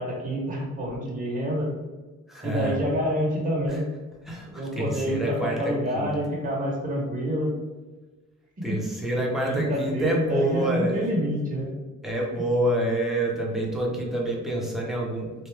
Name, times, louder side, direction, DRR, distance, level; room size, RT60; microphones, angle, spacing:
voice 1, 0.0-1.7 2.4-3.9 4.5-7.5 9.4-11.7, equal, 25° right, -3 dB, 1.1 m, -27 dB
voice 2, 2.3-2.8 3.7-3.8 4.2-6.2 8.6-11.1 12.0-15.3, right 1 dB, ahead, -3 dB, 1.0 m, -27 dB
3.3 x 2.6 x 3.4 m, 1.2 s
cardioid pair, 90°, 30 cm